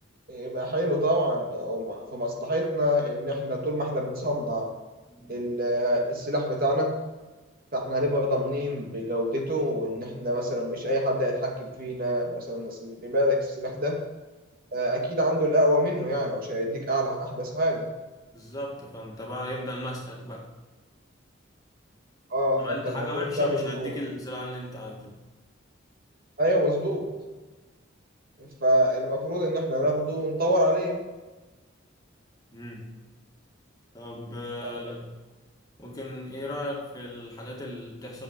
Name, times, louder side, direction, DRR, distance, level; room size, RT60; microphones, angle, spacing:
voice 1, 0.3-4.7 5.3-6.9 7.7-13.9 14.7-17.9 22.3-23.9 26.4-27.1 28.4-31.1 34.6-34.9, equal, 50° right, 0 dB, 2.4 m, -26 dB
voice 2, 5.1-5.5 18.3-20.5 22.6-25.2 32.5-32.9 33.9-35.1 35.8-38.2, left 1 dB, 20° left, -2 dB, 2.3 m, -36 dB
9.5 x 7.6 x 7.7 m, 1.2 s
head